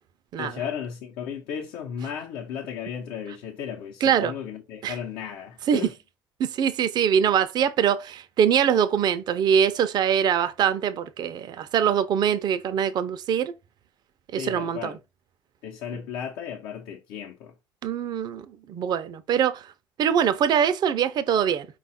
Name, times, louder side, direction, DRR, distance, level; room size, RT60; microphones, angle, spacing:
voice 1, 0.4-5.9 14.4-15.0 15.6-17.5, left 8 dB, 90° left, 0.7 m, -35 dB
voice 2, 4.0-4.3 4.8-5.0 5.7-5.9 6.4-13.5 14.3-14.9 17.8-19.7 20.0-21.7, right 8 dB, 55° right, 0.5 m, -23 dB
4.8 x 2.4 x 4.1 m
cardioid pair, 95°, 8 cm